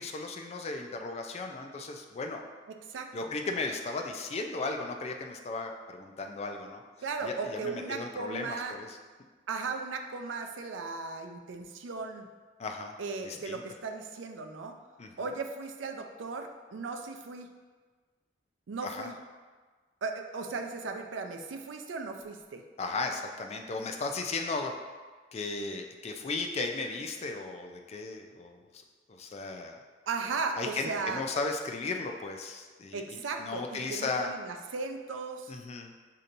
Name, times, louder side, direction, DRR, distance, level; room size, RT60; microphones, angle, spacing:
voice 1, 0.0-2.4 3.1-6.8 7.2-9.0 12.6-12.9 13.2-13.6 15.0-15.1 18.8-19.1 22.8-24.7 25.3-28.8 29.1-29.8 30.6-34.3 35.5-35.9, left 3 dB, 35° left, 3 dB, 0.4 m, -36 dB
voice 2, 2.9-3.3 7.0-8.7 9.5-12.3 13.0-14.7 15.2-17.5 18.7-19.1 20.0-22.6 30.1-31.2 32.9-35.5, right 4 dB, 90° right, 5 dB, 0.4 m, -36 dB
6.4 x 2.8 x 2.6 m, 1.4 s
head